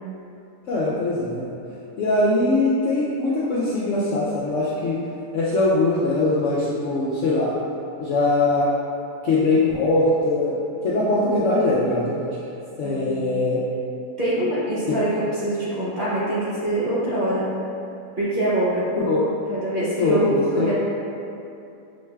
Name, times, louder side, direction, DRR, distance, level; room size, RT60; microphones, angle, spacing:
voice 1, 0.7-1.4 2.0-5.0 5.3-7.5 8.0-8.7 9.2-10.6 10.8-12.3 12.8-13.6 14.9-15.0 19.1-19.3 20.0-20.7, left 2 dB, 70° left, -7 dB, 0.7 m, -21 dB
voice 2, 12.8-13.1 14.2-17.5 18.2-18.9 19.5-20.7, right 1 dB, 40° right, -11 dB, 0.9 m, -24 dB
6.2 x 3.2 x 2.3 m, 2.7 s
omnidirectional pair, 1.7 m